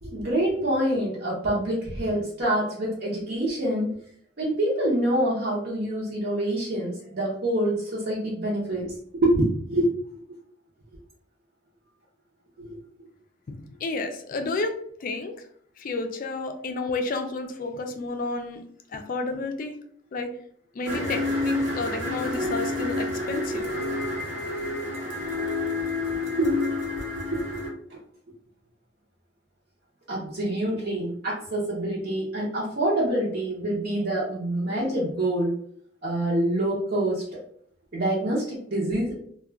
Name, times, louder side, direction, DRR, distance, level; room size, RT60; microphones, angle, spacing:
voice 1, 0.0-3.9 4.4-9.9 12.6-12.7 13.0-13.1 26.1-26.7 27.2-28.0 30.1-35.6 36.0-37.2 37.9-39.2, right 1 dB, 55° right, -5 dB, 0.7 m, -26 dB
voice 2, 13.5-15.5 15.8-18.6 18.9-19.8 20.1-20.3 20.7-23.6, left 3 dB, 45° left, 6 dB, 0.4 m, -31 dB
sound 1, 20.9-27.7, left 2 dB, 85° right, 1.2 m, -29 dB
2.3 x 2.2 x 3.4 m, 0.62 s
head